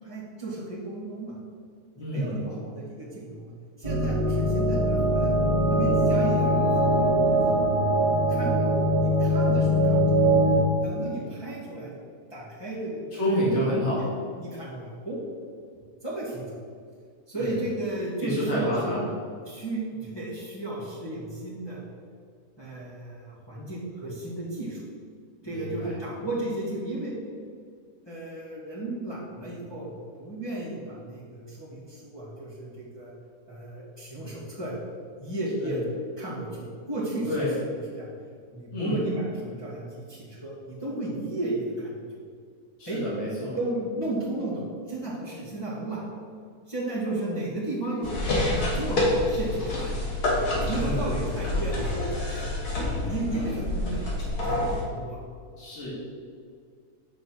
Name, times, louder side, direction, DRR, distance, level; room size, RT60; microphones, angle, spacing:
voice 1, 0.0-1.3 2.0-3.5 3.8-5.3 5.7-7.6 8.3-8.7 9.0-10.3 10.8-11.9 12.3-13.6 13.9-14.1 14.4-15.2 16.0-16.5 17.3-19.0 19.5-21.8 22.6-24.8 25.4-27.1 28.1-33.1 33.5-34.8 35.2-35.8 36.2-37.5 38.0-38.1 38.5-42.0 42.9-43.0 43.6-46.0 46.7-49.9 50.6-52.6 53.1-55.2, right 2 dB, 15° left, -8 dB, 1.8 m, -34 dB
voice 2, 2.0-2.4 13.1-14.1 17.3-17.6 18.2-19.0 25.4-25.9 35.6-35.7 37.3-37.5 38.7-39.0 42.8-43.6 50.6-51.2 53.3-53.5 55.6-55.9, equal, 45° left, -8 dB, 2.2 m, -29 dB
sound 1, 3.8-10.6, equal, 55° right, 1.8 m, -22 dB
sound 2, 48.0-54.8, left 2 dB, 80° left, 1.9 m, -27 dB
6.3 x 5.1 x 6.2 m, 2.1 s
omnidirectional pair, 1.6 m